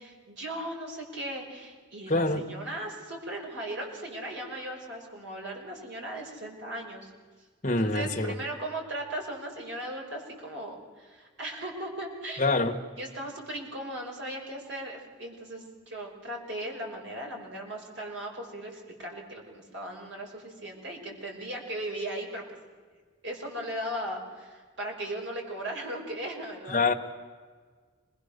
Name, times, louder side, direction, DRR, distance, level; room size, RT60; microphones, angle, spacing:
voice 1, 0.0-7.1 7.8-12.4 13.0-22.4 23.2-26.8, right 1 dB, 65° right, 0 dB, 5.5 m, -37 dB
voice 2, 2.1-2.4 7.6-8.4 12.4-12.8 26.7-26.9, left 2 dB, 35° left, 2 dB, 1.5 m, -25 dB
26.5 x 20.5 x 6.8 m, 1.5 s
head